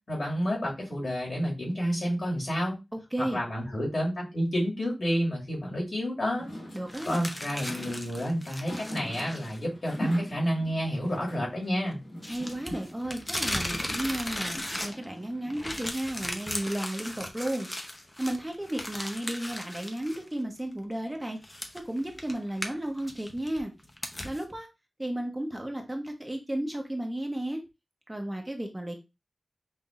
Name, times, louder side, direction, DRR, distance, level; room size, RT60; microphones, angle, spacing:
voice 1, 0.1-2.8 3.2-6.5 7.0-12.0, equal, 60° left, -3 dB, 2.0 m, -30 dB
voice 2, 2.9-3.4 6.7-7.3 12.3-17.7 18.2-23.7 24.2-24.7 25.0-27.6 28.1-29.0, right 1 dB, 15° right, 3 dB, 0.7 m, -33 dB
sound 1, 6.2-15.9, equal, 80° left, 1.9 m, -43 dB
sound 2, 6.9-9.6 9.9-10.0 12.2-15.2 15.5-20.2 20.6-20.7 21.4-24.4, left 1 dB, 20° left, 0.6 m, -37 dB
5.5 x 2.6 x 2.4 m, 0.25 s
wide cardioid pair, 90°, 0 cm